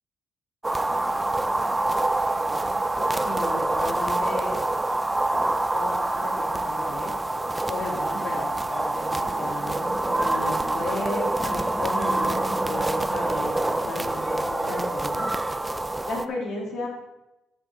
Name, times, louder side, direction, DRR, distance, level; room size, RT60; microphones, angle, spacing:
sound 1, 0.6-16.3, right 2 dB, 15° right, 0.5 m, -26 dB
voice 1, 3.2-4.6 5.4-7.1 7.7-15.3 16.1-16.9, left 2 dB, 70° left, 0 dB, 2.7 m, -34 dB
13.0 x 6.0 x 3.8 m, 0.95 s
cardioid pair, 90°, 0 cm